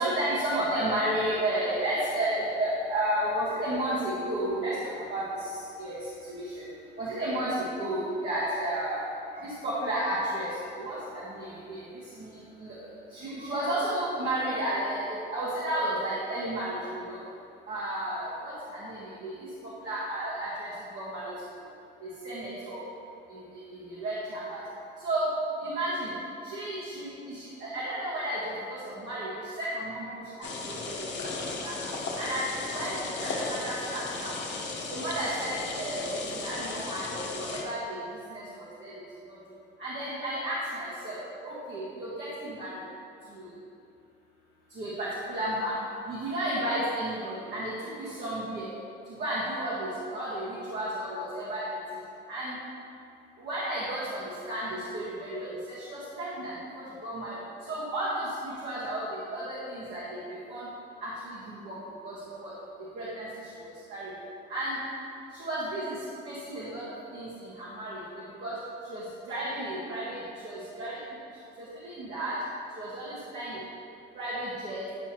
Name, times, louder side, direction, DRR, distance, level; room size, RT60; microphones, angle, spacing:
voice 1, 0.0-6.7 7.0-9.0 9.3-17.2 17.7-21.3 21.6-21.7 22.0-22.8 23.3-24.6 25.0-25.3 25.6-26.1 26.4-34.4 34.9-38.9 39.2-39.4 39.8-42.8 43.3-43.5 44.7-45.8 46.0-48.7 49.0-52.0 52.3-52.6 53.4-60.7 61.0-62.5 62.9-64.1 64.5-64.8 65.3-72.4 72.7-73.6 74.1-74.9, right 1 dB, 60° right, -9 dB, 1.5 m, -33 dB
sound 1, 30.4-37.6, left 3 dB, 65° left, 0.8 m, -35 dB
8.2 x 4.6 x 2.9 m, 2.6 s
cardioid pair, 90°, 20 cm